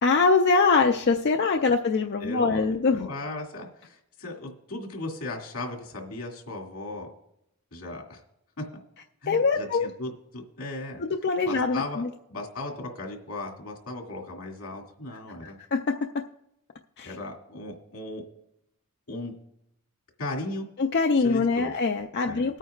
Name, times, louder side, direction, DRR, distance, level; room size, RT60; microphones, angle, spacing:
voice 1, 0.0-3.1 9.3-9.9 11.0-12.1 15.4-15.9 17.0-17.1 20.8-22.6, left 4 dB, 50° left, 4 dB, 0.4 m, -23 dB
voice 2, 2.2-2.7 2.9-7.1 7.7-8.2 8.6-8.7 9.2-11.0 11.4-12.0 12.3-15.6 17.0-18.2 19.1-19.3 20.2-20.7 21.2-21.7 22.2-22.5, left 2 dB, 80° left, 0 dB, 2.2 m, -36 dB
19.5 x 9.0 x 2.4 m, 0.79 s
head